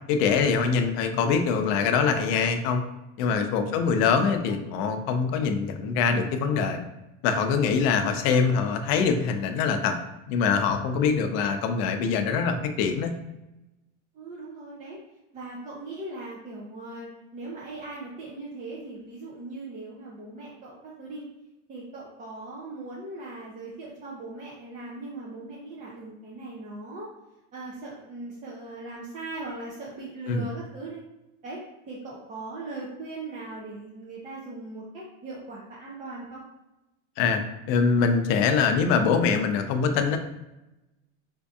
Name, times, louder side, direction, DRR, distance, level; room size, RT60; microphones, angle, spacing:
voice 1, 0.1-2.8 3.2-6.8 7.2-10.0 10.3-13.1 30.3-30.4 37.2-37.4 37.7-40.2, left 5 dB, 50° left, 7 dB, 0.5 m, -24 dB
voice 2, 3.7-4.7 8.0-8.2 14.1-15.0 15.3-21.2 21.7-27.1 27.5-31.0 31.4-31.6 31.9-36.4, right 2 dB, 20° right, -5 dB, 0.4 m, -39 dB
4.4 x 2.6 x 2.3 m, 0.97 s
supercardioid pair, 140°, 38 cm